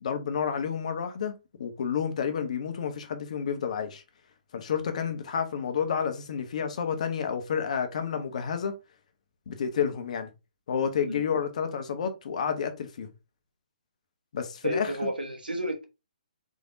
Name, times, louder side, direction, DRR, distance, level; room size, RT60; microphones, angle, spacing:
voice 1, 0.0-1.3 1.6-4.0 4.5-8.8 9.5-10.3 10.7-13.1 14.3-14.9, left 7 dB, 50° left, 0.8 m, -30 dB
voice 2, 14.6-15.8, right 1 dB, 85° right, 1.1 m, -31 dB
3.6 x 3.4 x 2.6 m
figure-of-eight pair, 135°, 5 cm